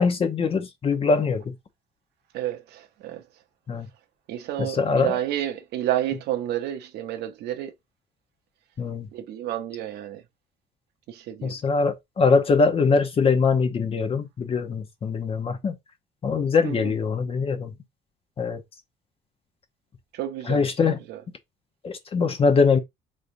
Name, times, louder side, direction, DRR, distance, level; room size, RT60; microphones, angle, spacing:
voice 1, 0.0-1.5 3.7-3.9 4.6-5.2 8.8-9.1 11.4-15.8 16.2-17.7 18.4-18.6 20.4-21.0 21.8-22.8, left 4 dB, 35° left, 0.7 m, -22 dB
voice 2, 2.3-3.2 4.3-7.7 9.1-10.2 11.1-11.6 16.6-16.9 20.1-21.2, right 12 dB, 75° right, 0.7 m, -30 dB
3.8 x 3.2 x 2.5 m
cardioid pair, 110°, 17 cm